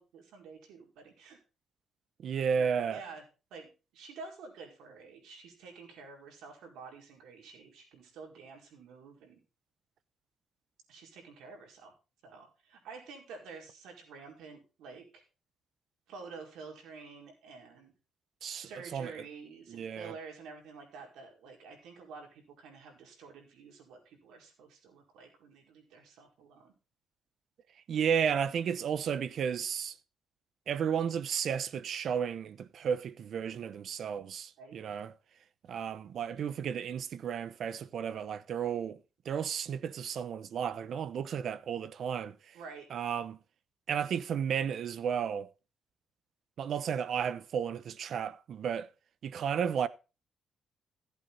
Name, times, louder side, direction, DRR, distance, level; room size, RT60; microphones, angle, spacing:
voice 1, 0.0-1.4 2.5-3.2 3.5-9.4 10.9-11.9 12.2-15.2 16.1-17.9 18.5-26.7 34.6-34.8 42.5-42.9, right 4 dB, 85° right, 4.9 m, -49 dB
voice 2, 2.2-3.0 18.4-19.1 19.7-20.1 27.9-29.9 30.7-35.1 35.7-39.0 39.3-42.3 42.9-43.4 43.9-45.5 46.6-48.9 49.2-49.9, right 7 dB, 65° right, 0.9 m, -33 dB
15.0 x 8.3 x 4.1 m
cardioid pair, 90°, 0 cm